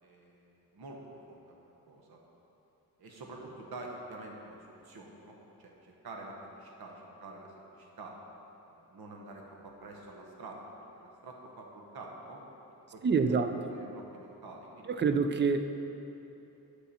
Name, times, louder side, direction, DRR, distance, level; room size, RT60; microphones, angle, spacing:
voice 1, 0.0-2.2 3.0-8.2 8.6-10.6 11.0-12.4 12.9-13.4 13.7-15.1, right 2 dB, 70° right, 0 dB, 1.2 m, -48 dB
voice 2, 13.0-13.5 14.9-15.9, right 5 dB, 30° right, 8 dB, 0.4 m, -27 dB
8.2 x 6.7 x 4.3 m, 2.9 s
wide cardioid pair, 140°, 38 cm